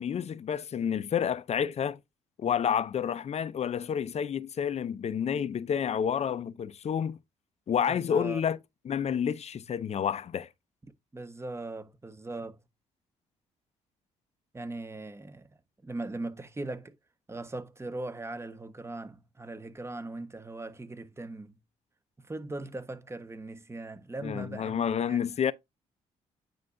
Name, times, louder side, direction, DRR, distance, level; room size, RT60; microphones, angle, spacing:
voice 1, 0.0-2.0 2.4-7.2 7.7-8.6 8.8-10.5 24.2-25.5, left 8 dB, 50° left, 0.7 m, -29 dB
voice 2, 7.9-8.4 11.1-12.6 14.5-15.5 15.8-17.0 17.3-21.6 22.2-25.2, right 2 dB, 20° right, 1.3 m, -39 dB
9.5 x 4.8 x 2.7 m
supercardioid pair, 60°, 14 cm